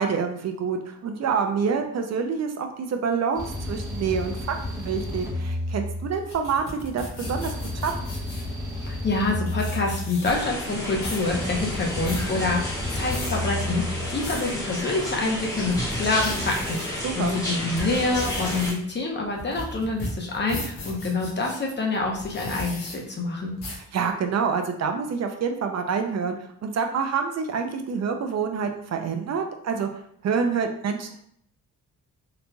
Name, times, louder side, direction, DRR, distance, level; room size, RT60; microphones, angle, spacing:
voice 1, 0.0-7.9 17.0-17.4 23.9-26.4 26.6-29.9 30.2-31.2, right 6 dB, 55° right, 5 dB, 0.4 m, -27 dB
sound 1, 3.3-6.5 7.2-10.5 11.3-14.1, left 1 dB, 10° right, 0.9 m, -32 dB
sound 2, 6.1-8.5 9.2-9.3 9.4-10.5 10.8-11.3 11.7-12.3 12.8-13.3 13.9-14.5 15.0-15.1 15.6-16.9 17.4-21.6 22.1-23.0 23.6-23.9, left 1 dB, 90° left, 1.1 m, -36 dB
voice 2, 8.7-23.5, left 3 dB, 35° left, 0 dB, 0.8 m, -27 dB
sound 3, 10.2-18.7, equal, 10° left, 1.2 m, -31 dB
3.9 x 3.0 x 2.2 m, 0.66 s
cardioid pair, 115°, 32 cm